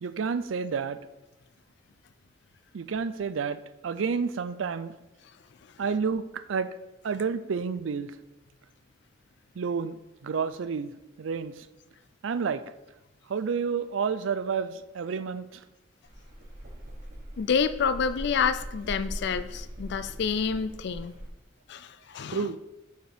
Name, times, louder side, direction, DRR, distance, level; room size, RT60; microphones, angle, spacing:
voice 1, 0.0-1.0 2.7-4.9 5.8-6.7 7.0-8.1 9.6-10.0 10.2-10.9 11.2-11.5 12.2-12.6 13.3-15.6 22.3-22.6, right 5 dB, 90° right, 13 dB, 0.4 m, -30 dB
sound 1, 16.0-21.3, equal, 50° right, 1.4 m, -40 dB
voice 2, 17.4-21.1 21.7-22.5, left 6 dB, 60° left, 14 dB, 0.4 m, -28 dB
6.6 x 4.9 x 4.5 m, 1.0 s
head